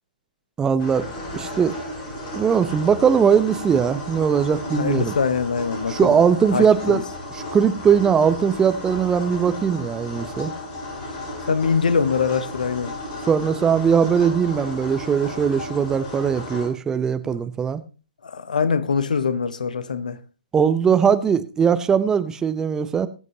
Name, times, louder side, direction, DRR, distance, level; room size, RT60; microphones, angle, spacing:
voice 1, 0.6-1.1 1.3-1.8 2.3-5.1 5.9-7.0 7.3-10.5 13.3-17.8 20.5-23.1, right 7 dB, 15° right, 0.8 m, -20 dB
sound 1, 0.8-16.7, left 1 dB, 30° left, 8.0 m, -34 dB
voice 2, 4.7-6.1 6.5-7.0 11.5-12.9 17.3-17.4 18.2-20.2, left 5 dB, 65° left, 1.1 m, -23 dB
20.5 x 8.2 x 2.8 m
figure-of-eight pair, 120°, 5 cm